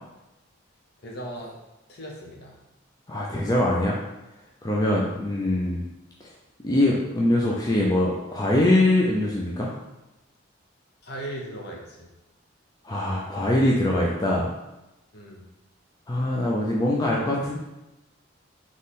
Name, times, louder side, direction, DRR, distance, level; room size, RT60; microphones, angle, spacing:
voice 1, 1.0-1.5 1.9-2.6 11.0-12.1 15.1-15.4, right 1 dB, 55° left, -2 dB, 0.9 m, -37 dB
voice 2, 3.1-4.0 4.6-5.8 6.6-9.7 12.8-14.5 16.1-17.5, left 1 dB, 20° left, -4 dB, 0.4 m, -23 dB
3.7 x 3.1 x 4.1 m, 0.97 s
head